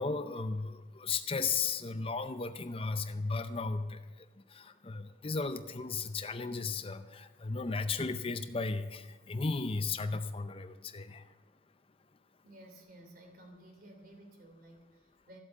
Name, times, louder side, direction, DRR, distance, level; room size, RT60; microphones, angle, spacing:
voice 1, 0.0-4.0 4.5-11.2, left 4 dB, 30° left, 9 dB, 0.6 m, -35 dB
voice 2, 12.4-15.4, right 1 dB, 50° right, 3 dB, 3.1 m, -54 dB
14.0 x 8.2 x 8.5 m, 1.2 s
head